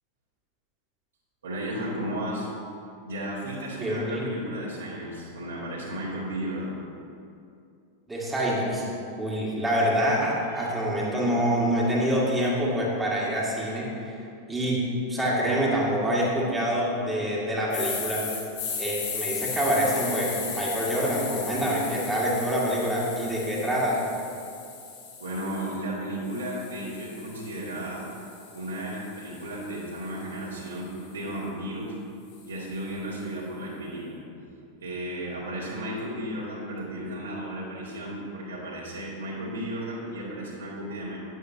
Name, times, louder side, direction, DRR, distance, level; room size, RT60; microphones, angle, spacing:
voice 1, 1.4-2.5 3.0-6.8 10.5-10.7 25.2-28.1 28.5-32.0 32.5-34.2 34.8-41.2, right 1 dB, 70° right, -6 dB, 2.3 m, -34 dB
voice 2, 3.8-4.3 8.1-8.8 9.2-14.1 14.5-14.8 15.1-18.3 18.8-24.0, equal, 10° right, -5 dB, 1.9 m, -26 dB
sound 1, 17.7-25.8 26.3-30.5, left 5 dB, 55° left, 2.4 m, -37 dB
11.5 x 9.6 x 2.8 m, 2.5 s
figure-of-eight pair, 90°, 0 cm